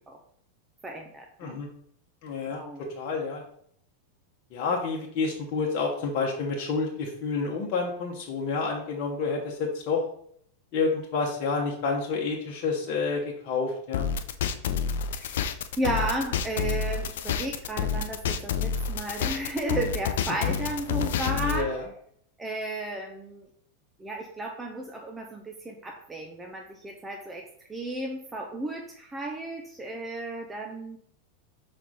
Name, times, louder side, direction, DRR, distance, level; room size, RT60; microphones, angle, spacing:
voice 1, 0.8-1.6 2.5-2.9 14.6-15.5 15.8-21.7 22.4-23.5 24.0-31.0, right 2 dB, 15° right, 2 dB, 0.7 m, -34 dB
voice 2, 2.2-2.6 3.0-3.4 4.5-10.0 10.7-14.1 21.4-21.8, left 4 dB, 40° left, -1 dB, 1.1 m, -29 dB
sound 1, 13.9-21.6, left 7 dB, 55° left, 0.5 m, -28 dB
6.0 x 4.3 x 4.0 m, 0.66 s
figure-of-eight pair, 90°, 0 cm